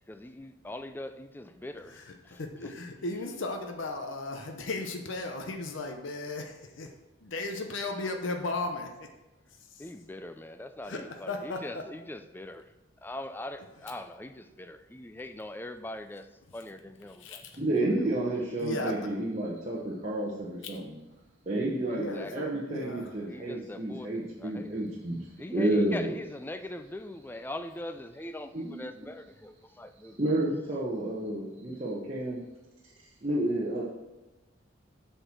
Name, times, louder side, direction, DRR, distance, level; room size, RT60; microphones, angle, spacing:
voice 1, 0.1-2.0 2.2-2.7 9.8-12.7 13.0-17.4 17.9-18.1 21.9-22.5 23.3-24.1 24.4-24.8 25.4-30.2, left 1 dB, 10° left, 10 dB, 0.3 m, -42 dB
voice 2, 2.3-6.9 7.2-8.9 10.9-11.6 17.2-17.4 18.6-18.9 21.9-23.1, left 2 dB, 75° left, 4 dB, 0.8 m, -35 dB
voice 3, 17.6-21.0 21.5-25.2 25.5-26.2 28.5-28.9 30.2-32.4 33.2-33.8, right 1 dB, 35° right, -7 dB, 1.1 m, -30 dB
8.0 x 4.5 x 6.0 m, 1.1 s
head